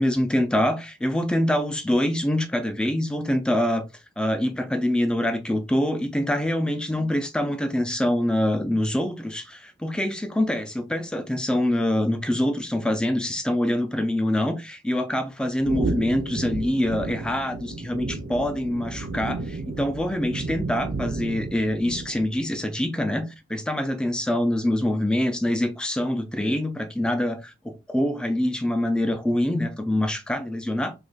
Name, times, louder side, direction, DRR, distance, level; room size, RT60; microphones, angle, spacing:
voice 1, 0.0-3.8 4.2-30.9, left 1 dB, 5° left, 0.3 m, -25 dB
sound 1, 15.6-22.4, right 3 dB, 60° right, 0.4 m, -32 dB
2.9 x 2.4 x 3.9 m
head